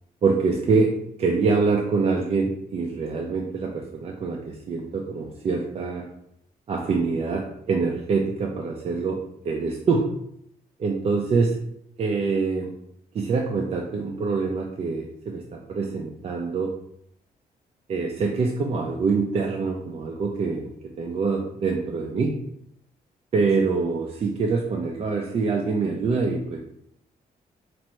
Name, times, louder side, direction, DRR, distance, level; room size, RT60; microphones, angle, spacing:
voice 1, 0.2-6.1 6.7-10.1 10.8-11.6 12.0-12.7 13.1-16.7 17.9-20.7 21.0-22.3 23.3-26.6, right 4 dB, 40° right, 0 dB, 0.4 m, -25 dB
4.3 x 2.6 x 3.0 m, 0.71 s
wide cardioid pair, 165°, 16 cm